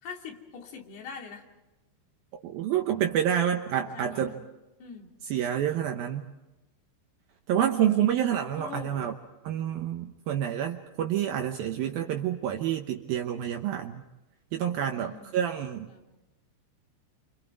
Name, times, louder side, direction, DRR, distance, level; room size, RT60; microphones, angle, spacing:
voice 1, 0.0-1.5 3.6-4.5 4.8-5.1 7.7-9.1 14.9-15.5 15.9-16.1, left 5 dB, 60° left, 1 dB, 4.7 m, -44 dB
voice 2, 2.4-4.4 5.3-6.3 7.5-9.1 9.4-14.0 14.5-15.9, right 10 dB, 85° right, 4 dB, 2.1 m, -28 dB
28.0 x 27.0 x 4.8 m, 1.0 s
omnidirectional pair, 5.6 m